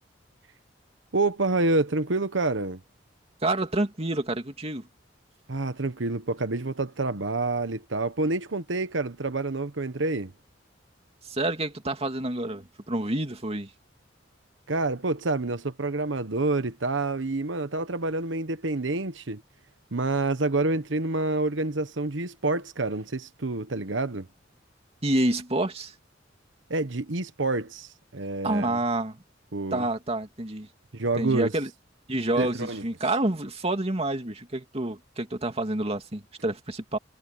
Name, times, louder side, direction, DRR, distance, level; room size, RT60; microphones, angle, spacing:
voice 1, 1.1-2.8 5.5-10.3 14.7-19.4 19.9-24.3 26.7-28.8 29.5-29.9 30.9-31.5 32.4-32.8, right 2 dB, 75° right, 1.2 m, -28 dB
voice 2, 3.4-4.9 11.3-13.7 25.0-25.9 28.4-29.2 29.7-30.7 31.1-31.7 32.1-37.0, right 1 dB, 35° right, 2.6 m, -28 dB
head